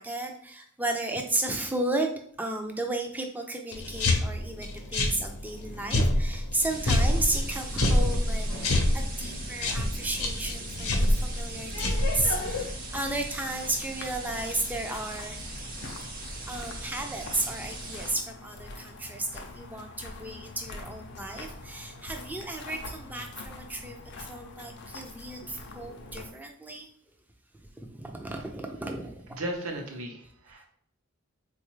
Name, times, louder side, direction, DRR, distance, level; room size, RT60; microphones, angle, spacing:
voice 1, 0.0-15.4 16.5-26.9 27.8-29.3, right 2 dB, 10° right, 3 dB, 0.3 m, -34 dB
sound 1, 3.7-12.6, left 1 dB, 90° left, 0.7 m, -27 dB
sound 2, 6.7-18.1, right 2 dB, 40° right, 0.7 m, -40 dB
sound 3, 12.5-26.3, left 2 dB, 50° left, 0.5 m, -45 dB
voice 2, 29.4-30.7, right 1 dB, 75° right, 2 dB, 0.7 m, -35 dB
3.8 x 2.4 x 3.0 m, 0.65 s
head